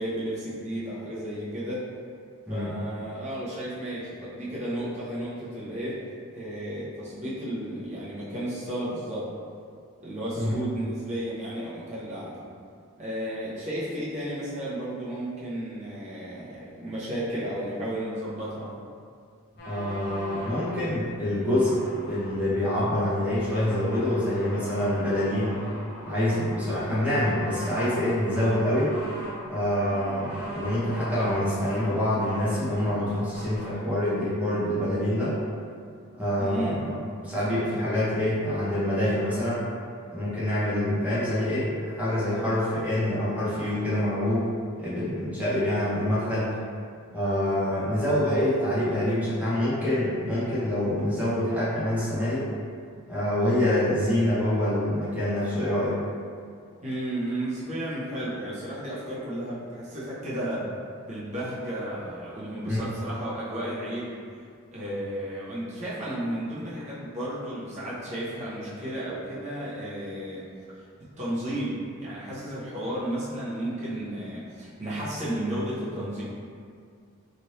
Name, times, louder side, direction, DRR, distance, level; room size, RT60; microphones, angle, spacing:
voice 1, 0.0-1.9 2.5-9.3 10.0-12.4 13.0-18.8 36.4-36.8 56.8-60.7 61.1-64.2 64.7-70.5 70.7-70.9 71.2-76.2, right 1 dB, 35° right, -9 dB, 0.8 m, -33 dB
sound 1, 19.6-20.9 21.3-22.5 23.3-33.8, left 1 dB, 50° left, 0.7 m, -40 dB
voice 2, 19.6-25.6 26.0-28.9 29.5-35.4 36.2-36.9 37.2-39.6 40.1-44.5 44.8-46.5 47.1-52.4 53.1-56.0 62.6-62.8, left 1 dB, 5° right, -10 dB, 0.8 m, -26 dB
3.1 x 2.6 x 2.8 m, 2.2 s
head